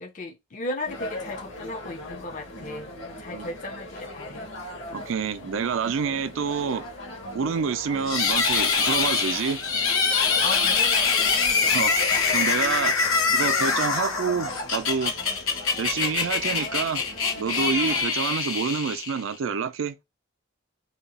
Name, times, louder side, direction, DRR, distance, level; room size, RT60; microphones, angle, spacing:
voice 1, 0.0-4.5 10.4-11.4, left 2 dB, 35° left, 0.5 m, -36 dB
sound 1, 0.9-18.0, left 1 dB, 65° left, 1.2 m, -39 dB
voice 2, 4.9-6.8 7.3-9.6 11.6-13.0 13.3-15.1 15.8-17.0 17.3-20.0, right 6 dB, 70° right, 0.4 m, -28 dB
sound 2, 8.1-19.4, left 5 dB, 80° left, 1.0 m, -24 dB
2.8 x 2.3 x 4.0 m
head